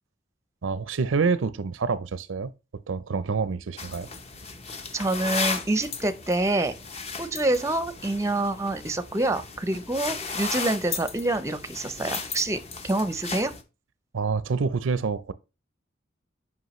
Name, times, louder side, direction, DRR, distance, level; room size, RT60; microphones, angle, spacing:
voice 1, 0.6-4.1 14.1-15.3, right 5 dB, 80° right, 0.5 m, -27 dB
sound 1, 3.8-13.6, left 4 dB, 35° left, 0.8 m, -35 dB
voice 2, 4.9-6.7 7.2-12.6 12.8-13.5, right 2 dB, 15° right, 0.6 m, -26 dB
7.9 x 5.4 x 3.1 m
head